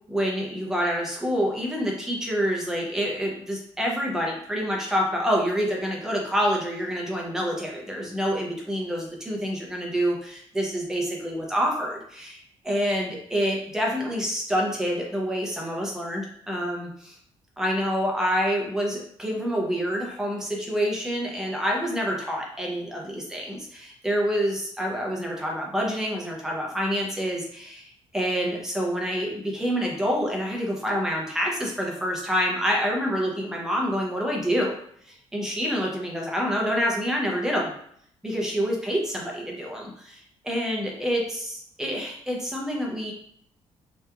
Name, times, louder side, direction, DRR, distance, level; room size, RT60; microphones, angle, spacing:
voice 1, 0.1-17.2 17.6-34.7 35.1-37.7 38.2-43.1, equal, 5° right, -1 dB, 0.5 m, -27 dB
2.8 x 2.3 x 2.2 m, 0.66 s
cardioid pair, 170°, 11 cm